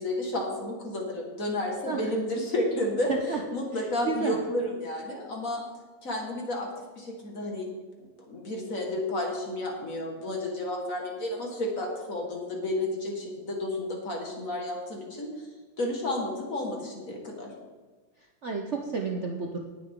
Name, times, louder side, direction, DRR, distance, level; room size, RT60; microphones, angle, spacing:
voice 1, 0.0-5.6 6.0-7.7 8.0-15.5 15.8-17.5, left 1 dB, 45° left, 0 dB, 2.2 m, -31 dB
voice 2, 3.1-3.4 4.0-4.4 18.4-19.6, right 4 dB, 50° right, 1 dB, 0.9 m, -31 dB
19.0 x 6.6 x 3.8 m, 1.4 s
omnidirectional pair, 2.1 m